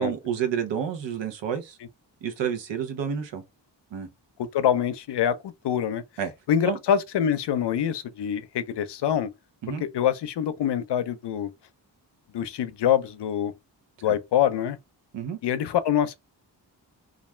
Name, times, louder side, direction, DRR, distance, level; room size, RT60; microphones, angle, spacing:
voice 1, 0.0-1.8 2.2-3.4 3.9-4.1 6.2-6.3 6.7-6.8 9.6-9.8 15.1-15.4, right 8 dB, 90° right, 0.7 m, -29 dB
voice 2, 4.4-6.0 6.5-9.3 9.8-11.5 12.3-13.5 14.0-14.8 15.4-16.2, left 9 dB, 70° left, 0.5 m, -25 dB
2.4 x 2.2 x 3.1 m
cardioid pair, 75°, 43 cm